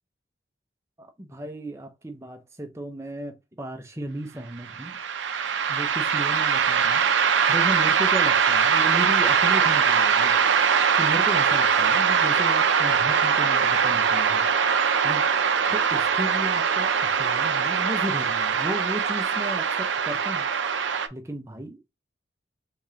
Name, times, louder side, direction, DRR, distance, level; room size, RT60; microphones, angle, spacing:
voice 1, 1.0-5.0 5.7-10.4 11.0-14.5 15.0-15.3 15.7-20.5 21.1-21.9, right 1 dB, 15° right, 0.6 m, -35 dB
sound 1, 4.7-21.1, right 6 dB, 80° right, 0.5 m, -22 dB
3.8 x 3.5 x 2.7 m
head